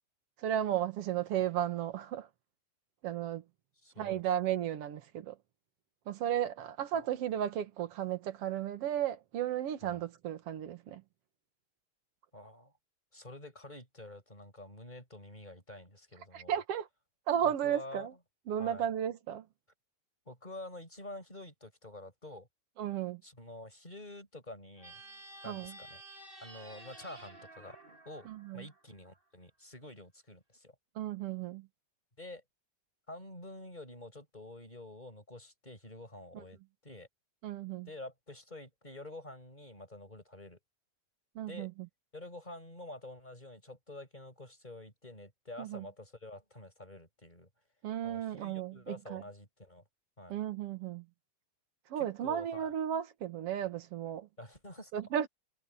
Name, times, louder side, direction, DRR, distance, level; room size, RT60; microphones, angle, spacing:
voice 1, 0.4-2.3 3.0-3.4 4.0-5.4 6.1-11.0 16.3-16.9 17.3-18.1 18.5-19.5 22.8-23.2 25.5-25.7 28.3-28.7 31.0-31.7 36.3-36.4 37.4-37.9 41.4-41.7 45.6-45.9 47.8-49.2 50.3-51.1 51.9-54.3 54.9-55.3, right 10 dB, 60° right, 2.1 m, -34 dB
voice 2, 3.8-4.2 6.9-7.1 9.8-10.0 12.3-12.7 13.1-16.6 17.4-18.1 18.6-18.9 20.3-22.5 23.2-25.0 25.4-26.0 26.4-27.8 28.1-28.3 28.5-30.8 32.2-32.4 33.1-37.1 37.9-40.6 41.5-41.7 42.1-47.5 48.0-49.8 50.2-50.4 52.0-52.7 54.4-54.9, left 1 dB, 15° left, 6.7 m, -48 dB
sound 1, 24.8-29.2, right 2 dB, 20° right, 2.9 m, -52 dB
omnidirectional pair, 3.5 m